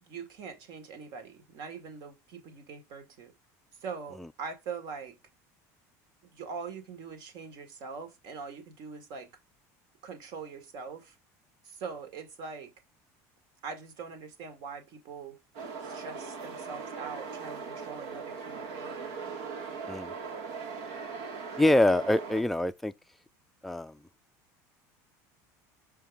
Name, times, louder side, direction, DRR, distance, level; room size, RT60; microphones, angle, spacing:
voice 1, 0.0-3.3 3.8-5.2 6.2-9.3 10.0-11.2 11.6-12.7 13.6-15.4 15.8-19.2, right 5 dB, 60° right, 2.0 m, -42 dB
sound 1, 15.5-22.4, right 5 dB, 90° right, 2.1 m, -39 dB
voice 2, 21.6-22.9 23.6-24.0, left 1 dB, ahead, 0.3 m, -25 dB
5.7 x 4.7 x 3.5 m
supercardioid pair, 115°, 8 cm